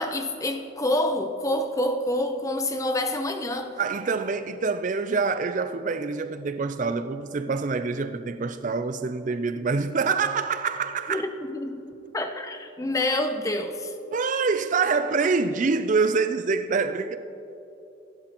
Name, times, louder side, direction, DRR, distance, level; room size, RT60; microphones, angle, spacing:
voice 1, 0.0-3.7 11.1-13.9, left 1 dB, 15° left, 0.7 m, -27 dB
voice 2, 3.8-11.2 14.1-17.2, right 4 dB, 40° right, 0.4 m, -26 dB
26.5 x 11.5 x 3.0 m
head